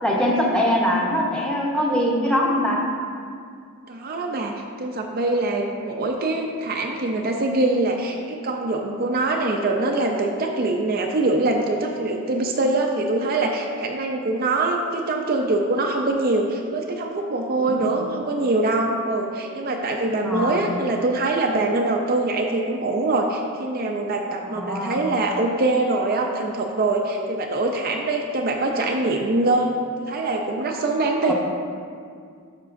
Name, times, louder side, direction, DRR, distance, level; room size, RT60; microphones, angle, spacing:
voice 1, 0.0-2.8 17.6-18.0 20.2-20.6 24.5-25.0 31.2-31.3, equal, 5° left, -3 dB, 0.9 m, -22 dB
voice 2, 3.9-31.3, right 2 dB, 45° right, 1 dB, 0.5 m, -23 dB
10.5 x 6.5 x 2.6 m, 2.2 s
head